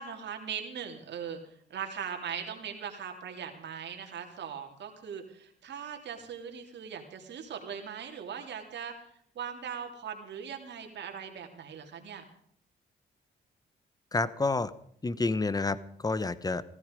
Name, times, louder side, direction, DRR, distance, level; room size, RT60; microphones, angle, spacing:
voice 1, 0.0-8.9 9.3-12.2, right 7 dB, 70° right, 3 dB, 3.0 m, -40 dB
voice 2, 14.1-14.7 15.0-16.6, left 3 dB, 20° left, 17 dB, 0.9 m, -29 dB
16.0 x 14.0 x 5.2 m, 0.66 s
cardioid pair, 80°, 19 cm